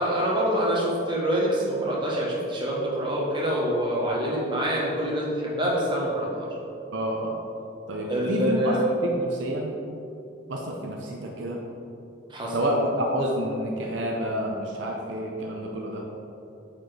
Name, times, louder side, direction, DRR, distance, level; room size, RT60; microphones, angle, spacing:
voice 1, 0.0-6.5 8.1-8.8 12.3-12.6, equal, 25° right, -5 dB, 1.2 m, -26 dB
voice 2, 6.9-7.4 7.9-8.7 9.0-9.7 10.5-11.6 12.5-16.0, equal, 70° right, 0 dB, 0.6 m, -28 dB
8.7 x 4.2 x 3.4 m, 2.7 s
head